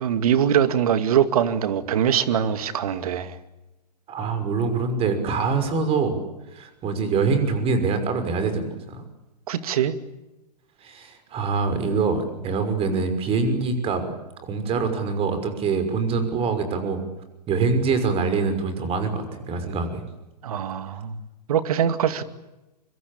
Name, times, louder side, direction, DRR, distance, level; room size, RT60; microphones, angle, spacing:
voice 1, 0.0-3.3 9.5-9.9 20.4-21.2 21.5-22.2, right 9 dB, 60° right, 12 dB, 2.3 m, -22 dB
voice 2, 4.1-6.2 6.5-9.0 10.8-14.1 14.4-17.0 17.5-20.0, right 4 dB, 25° right, 9 dB, 5.8 m, -24 dB
25.0 x 25.0 x 8.8 m, 0.99 s
figure-of-eight pair, 110°, 21 cm